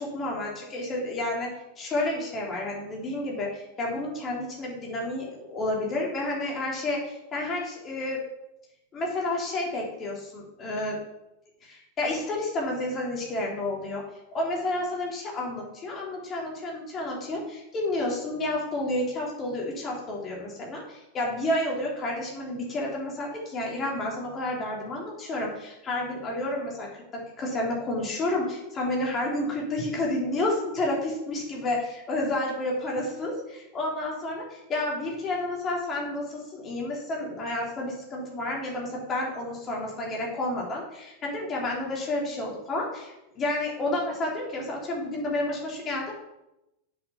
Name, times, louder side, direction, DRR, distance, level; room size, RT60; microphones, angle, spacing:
voice 1, 0.0-1.5 1.8-8.2 8.9-11.0 11.6-14.0 14.3-46.1, left 1 dB, 25° left, -2 dB, 3.2 m, -30 dB
8.3 x 6.2 x 5.9 m, 0.92 s
figure-of-eight pair, 90°, 0 cm